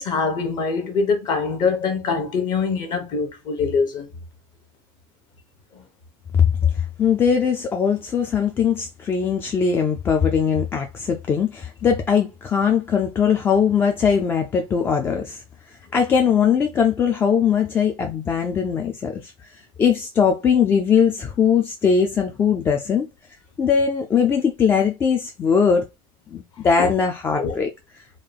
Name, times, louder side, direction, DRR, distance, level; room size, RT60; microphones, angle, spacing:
voice 1, 0.0-4.1 5.7-5.8 26.8-26.9 27.4-27.6, left 5 dB, 40° left, 1.1 m, -23 dB
voice 2, 7.0-15.4 15.9-23.1 23.6-25.8 26.3-27.7, left 7 dB, 20° left, 0.3 m, -20 dB
3.8 x 2.4 x 3.3 m
cardioid pair, 165°, 11 cm